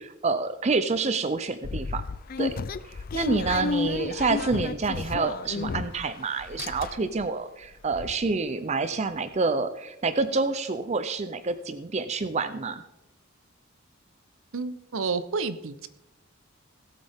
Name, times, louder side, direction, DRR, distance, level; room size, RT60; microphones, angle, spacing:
voice 1, 0.0-2.0 2.4-2.5 2.8-12.8, right 3 dB, 30° right, 11 dB, 0.5 m, -28 dB
sound 1, 1.6-6.1 6.4-7.2 7.6-7.7 7.9-8.1, left 4 dB, 40° left, 0.4 m, -32 dB
voice 2, 14.5-15.9, right 4 dB, 70° right, 13 dB, 0.7 m, -30 dB
17.5 x 8.3 x 3.5 m, 0.91 s
head